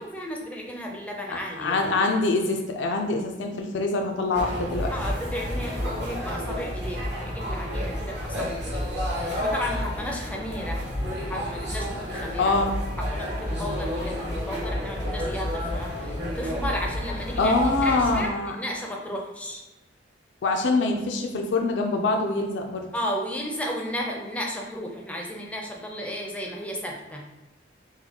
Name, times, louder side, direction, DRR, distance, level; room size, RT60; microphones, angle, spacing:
voice 1, 0.0-2.1 4.9-8.9 9.3-10.8 11.2-12.6 13.0-19.6 22.9-27.2, equal, 10° left, 0 dB, 0.4 m, -34 dB
voice 2, 1.3-4.9 12.4-12.7 17.4-18.6 20.4-22.9, left 3 dB, 85° left, 3 dB, 0.4 m, -24 dB
sound 1, 4.3-18.3, equal, 65° right, 1.0 m, -30 dB
4.0 x 2.2 x 2.8 m, 1.1 s
head